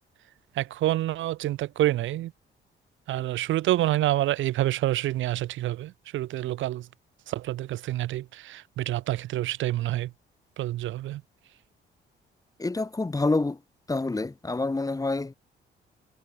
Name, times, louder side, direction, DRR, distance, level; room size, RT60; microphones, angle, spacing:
voice 1, 0.5-2.3 3.1-6.9 7.3-10.1 10.6-11.2, right 15 dB, 75° right, 0.7 m, -27 dB
voice 2, 12.6-13.6 13.9-15.3, left 3 dB, 15° left, 1.7 m, -27 dB
cardioid pair, 90°, 20 cm